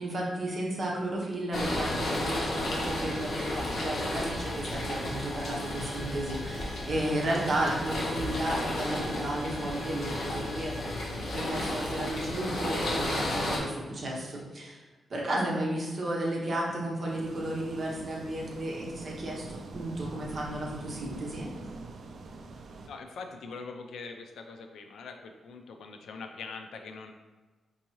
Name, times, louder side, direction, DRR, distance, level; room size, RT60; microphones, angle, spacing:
voice 1, 0.0-14.8 15.1-21.5, right 1 dB, 35° right, -3 dB, 0.8 m, -33 dB
sound 1, 1.5-13.6, left 1 dB, 55° left, 0.8 m, -33 dB
sound 2, 1.5-12.1, equal, 10° left, 0.9 m, -48 dB
sound 3, 17.1-22.9, right 3 dB, 55° right, 0.3 m, -44 dB
voice 2, 22.9-27.1, left 4 dB, 85° left, 5 dB, 0.4 m, -43 dB
4.5 x 2.7 x 3.0 m, 1.3 s
wide cardioid pair, 175°, 0 cm